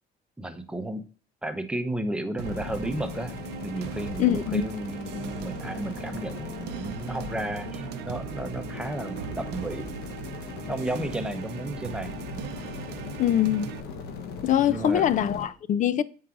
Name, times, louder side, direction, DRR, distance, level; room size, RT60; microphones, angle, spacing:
voice 1, 0.4-1.0 1.4-9.9 10.7-12.1 13.3-13.4 14.7-15.1, right 1 dB, 5° right, 0.8 m, -33 dB
sound 1, 2.4-15.5, left 5 dB, 75° left, 1.0 m, -39 dB
sound 2, 2.4-13.8, right 9 dB, 90° right, 0.6 m, -39 dB
voice 2, 4.2-4.6 13.2-13.7 14.4-16.0, left 10 dB, 50° left, 0.4 m, -23 dB
7.4 x 4.7 x 3.8 m
cardioid pair, 110°, 17 cm